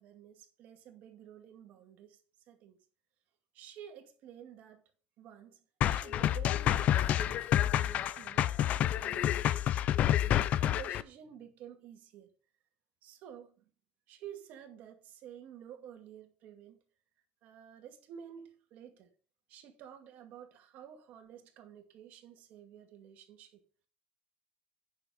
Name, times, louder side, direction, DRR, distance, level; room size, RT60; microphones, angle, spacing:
voice 1, 0.0-2.2 2.5-2.8 3.5-4.8 5.2-8.5 8.8-9.5 10.0-12.3 13.0-13.6 14.1-16.8 17.4-19.1 19.5-23.6, right 9 dB, 55° right, 2.2 m, -51 dB
sound 1, 5.8-11.0, left 11 dB, 50° left, 0.5 m, -28 dB
9.7 x 6.8 x 5.2 m
cardioid pair, 150°, 3 cm